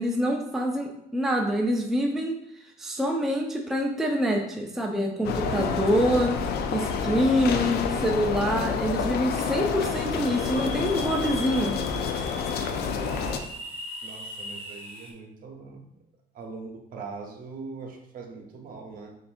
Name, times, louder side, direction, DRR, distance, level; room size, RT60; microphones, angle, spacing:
voice 1, 0.0-2.4 2.8-6.4 6.7-11.8, equal, ahead, 1 dB, 0.5 m, -26 dB
sound 1, 5.2-13.4, left 6 dB, 75° left, 0.5 m, -28 dB
sound 2, 9.8-15.1, left 1 dB, 35° right, 1.4 m, -40 dB
voice 2, 14.0-15.9 16.3-19.2, right 4 dB, 55° right, 2 dB, 0.9 m, -41 dB
6.8 x 2.6 x 2.5 m, 0.78 s
cardioid pair, 110°, 17 cm